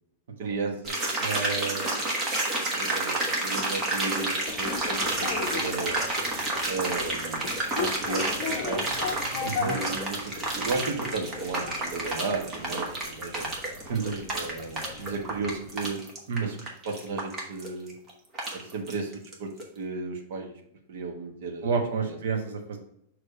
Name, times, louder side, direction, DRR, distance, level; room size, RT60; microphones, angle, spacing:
voice 1, 0.4-1.0 2.7-6.0 6.6-7.5 7.7-8.8 9.6-13.5 14.3-16.0 16.4-16.6 16.8-17.9 18.5-20.6 20.9-21.7 22.0-22.2, right 3 dB, 55° right, 2 dB, 1.3 m, -34 dB
sound 1, 0.9-19.3 19.6-19.7, right 2 dB, 20° right, 1.2 m, -30 dB
voice 2, 1.2-1.9 9.4-9.7 13.9-14.3 16.3-16.5 21.6-22.8, right 5 dB, 80° right, 3 dB, 1.1 m, -29 dB
sound 2, 4.5-15.8, left 6 dB, 35° left, 1.0 m, -38 dB
6.6 x 3.2 x 5.2 m, 0.73 s
supercardioid pair, 170°, 0 cm